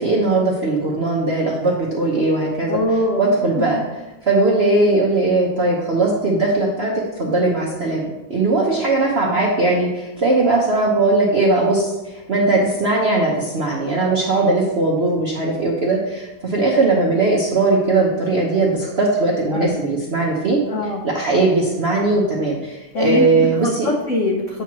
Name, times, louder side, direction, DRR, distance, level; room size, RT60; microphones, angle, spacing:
voice 1, 0.0-2.8 3.2-3.8 4.2-20.6 21.0-23.9, right 2 dB, 65° right, -3 dB, 0.6 m, -19 dB
voice 2, 2.7-3.7 19.5-19.7 20.7-21.0 22.9-24.6, left 2 dB, 85° left, 0 dB, 0.6 m, -23 dB
8.1 x 3.0 x 6.0 m, 1.1 s
omnidirectional pair, 2.3 m